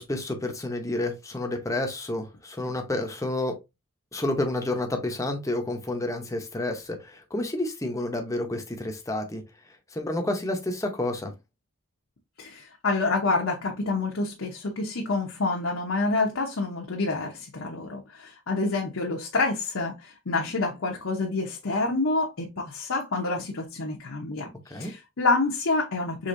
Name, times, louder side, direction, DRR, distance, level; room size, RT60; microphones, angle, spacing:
voice 1, 0.0-3.5 4.1-9.4 9.9-11.3 24.7-24.9, left 1 dB, 15° left, 0.7 m, -30 dB
voice 2, 12.4-26.3, left 3 dB, 65° left, 0.8 m, -28 dB
5.1 x 3.5 x 2.6 m
head